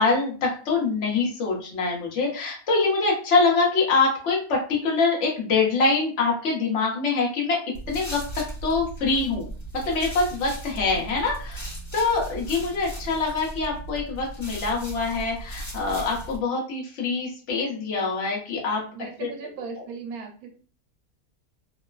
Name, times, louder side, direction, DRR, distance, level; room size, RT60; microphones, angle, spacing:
voice 1, 0.0-7.6 7.9-9.5 9.8-18.8 19.2-19.3, left 4 dB, 55° left, -2 dB, 1.1 m, -24 dB
sound 1, 7.7-16.4, right 1 dB, 35° left, 1.2 m, -37 dB
voice 2, 18.9-20.6, right 5 dB, 85° right, 4 dB, 1.1 m, -37 dB
3.0 x 2.0 x 2.4 m, 0.39 s
omnidirectional pair, 1.5 m